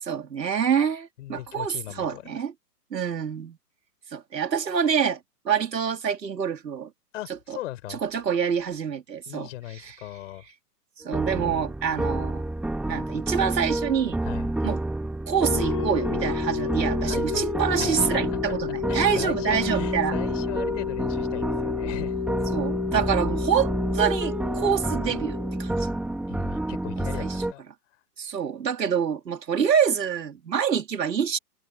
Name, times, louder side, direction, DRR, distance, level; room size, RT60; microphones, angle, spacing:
voice 1, 0.0-2.5 2.9-3.6 4.1-5.2 5.4-6.9 7.5-7.6 7.9-9.5 9.8-9.9 11.0-12.4 12.9-14.2 14.6-14.8 15.3-20.2 22.5-25.9 27.0-27.4 28.2-31.4, right 7 dB, 85° right, 3.8 m, -26 dB
voice 2, 1.2-2.4 7.1-8.0 9.3-10.4 14.2-14.5 17.0-17.5 17.8-18.6 18.9-22.2 26.3-27.6, left 15 dB, 50° left, 6.0 m, -38 dB
sound 1, 11.1-27.5, right 1 dB, ahead, 2.0 m, -29 dB
sound 2, 15.4-26.1, left 10 dB, 20° left, 0.4 m, -32 dB
hypercardioid pair, 140°, 49 cm